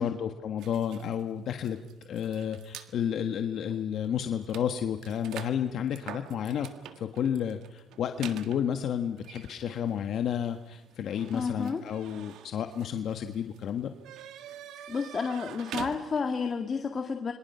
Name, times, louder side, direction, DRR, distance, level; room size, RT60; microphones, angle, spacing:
voice 1, 0.0-1.8 2.1-6.7 7.0-13.9, left 9 dB, 70° left, 6 dB, 1.5 m, -31 dB
sound 1, 0.6-2.9 3.6-3.8 4.0-16.5, right 10 dB, 85° right, 1.7 m, -46 dB
voice 2, 11.3-11.8 14.9-17.3, left 5 dB, 40° left, 5 dB, 2.0 m, -31 dB
27.5 x 24.5 x 5.7 m, 0.94 s
cardioid pair, 90°, 0 cm